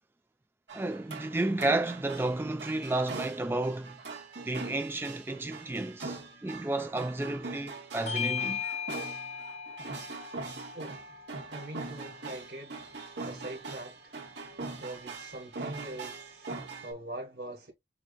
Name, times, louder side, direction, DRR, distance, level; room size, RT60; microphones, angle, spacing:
voice 1, 0.7-4.0 4.4-8.6, right 2 dB, 15° right, 0.3 m, -32 dB
sound 1, 0.7-16.9, right 3 dB, 85° right, 1.6 m, -42 dB
Bell / Doorbell, 8.1-12.9, left 7 dB, 40° left, 0.5 m, -38 dB
voice 2, 11.5-12.7 13.2-14.2 14.8-16.5 16.8-17.7, right 1 dB, 65° right, 1.4 m, -42 dB
6.9 x 2.5 x 2.4 m
head